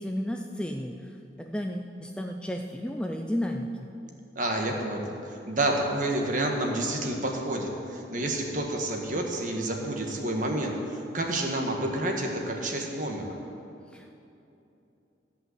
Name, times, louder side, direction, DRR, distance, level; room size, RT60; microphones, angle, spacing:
voice 1, 0.0-3.8 13.9-14.2, equal, 5° left, 3 dB, 0.4 m, -33 dB
voice 2, 4.3-13.2, right 1 dB, 45° right, 1 dB, 1.4 m, -29 dB
14.0 x 5.6 x 7.9 m, 2.8 s
head